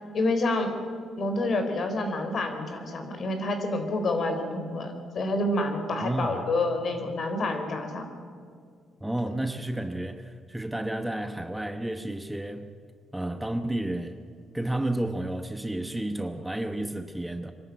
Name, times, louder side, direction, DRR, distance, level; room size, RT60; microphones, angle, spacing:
voice 1, 0.1-0.7 1.2-8.1, left 2 dB, 50° left, 6 dB, 3.9 m, -28 dB
voice 2, 6.0-6.4 9.0-12.7 13.1-14.2 14.5-17.5, right 1 dB, 5° right, 8 dB, 1.0 m, -31 dB
24.5 x 12.5 x 9.3 m, 2.1 s
cardioid pair, 90°, 0 cm